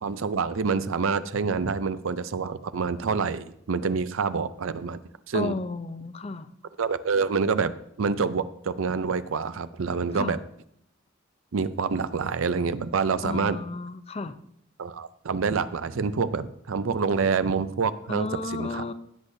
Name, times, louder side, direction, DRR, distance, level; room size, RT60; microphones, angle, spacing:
voice 1, 0.0-5.0 5.3-5.5 6.8-7.7 8.0-10.4 11.5-13.6 14.8-18.8, right 5 dB, 85° right, 13 dB, 0.5 m, -27 dB
voice 2, 5.3-6.5 10.1-10.4 13.2-14.4 18.1-18.9, left 3 dB, 30° left, 12 dB, 0.5 m, -33 dB
16.0 x 8.2 x 2.7 m, 0.70 s
head